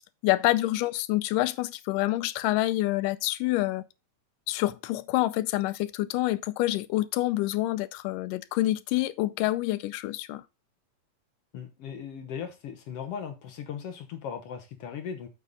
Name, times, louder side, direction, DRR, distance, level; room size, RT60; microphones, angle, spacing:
voice 1, 0.2-3.8 4.5-10.4, left 17 dB, 90° left, 2.2 m, -27 dB
voice 2, 11.5-15.3, left 7 dB, 65° left, 1.6 m, -38 dB
7.5 x 6.6 x 3.9 m
omnidirectional pair, 3.7 m